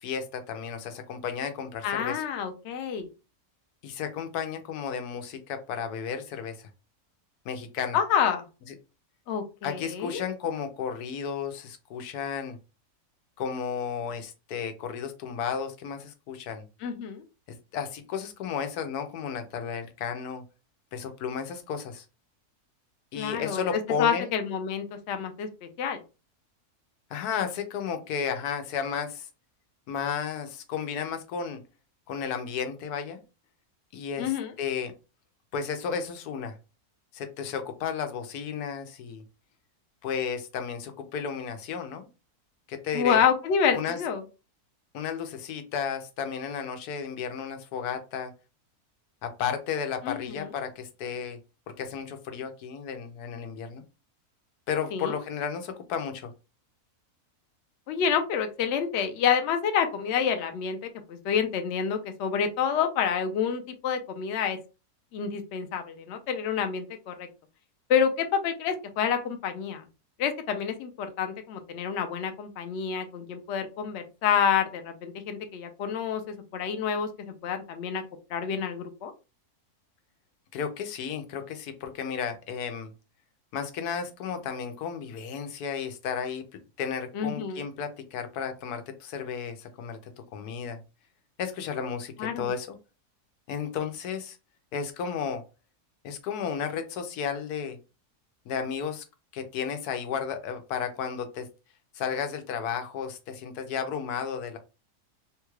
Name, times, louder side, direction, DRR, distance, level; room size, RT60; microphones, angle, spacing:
voice 1, 0.0-2.2 3.8-6.6 7.4-8.0 9.6-12.6 13.4-16.6 17.7-20.4 20.9-22.0 23.1-24.3 27.1-29.3 29.9-31.6 32.1-33.2 33.9-34.9 35.5-36.5 37.1-39.2 40.0-42.1 42.7-43.2 43.7-44.0 44.9-48.3 49.2-51.4 51.8-53.8 54.7-56.3 80.5-82.9 83.5-86.4 86.8-90.0 90.3-90.8 91.4-92.8 93.5-94.4 94.7-95.4 96.0-97.8 98.5-99.0 99.3-101.5 101.9-104.6, left 7 dB, 85° left, 7 dB, 1.2 m, -33 dB
voice 2, 1.8-3.1 7.9-8.4 9.3-10.2 16.8-17.2 23.2-23.6 24.0-26.0 34.2-34.5 42.9-44.2 50.0-50.5 54.9-55.2 57.9-64.6 65.1-67.3 67.9-69.9 70.2-78.0 78.3-79.1 87.1-87.6 92.2-92.5, left 7 dB, 65° left, 6 dB, 0.7 m, -28 dB
3.6 x 2.3 x 3.1 m, 0.30 s
omnidirectional pair, 1.6 m